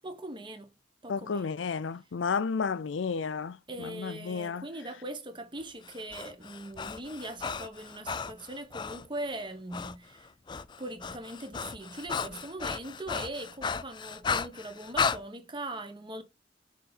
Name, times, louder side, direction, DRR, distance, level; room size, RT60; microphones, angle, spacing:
voice 1, 0.0-0.7 1.0-1.5 3.7-10.3 10.8-16.2, right 1 dB, 25° right, 1.2 m, -40 dB
voice 2, 1.1-4.6, left 5 dB, 85° left, 0.5 m, -32 dB
Breathing, 5.8-9.1 9.7-10.0 10.2-15.2, left 5 dB, 25° left, 0.4 m, -34 dB
6.3 x 4.0 x 4.1 m
head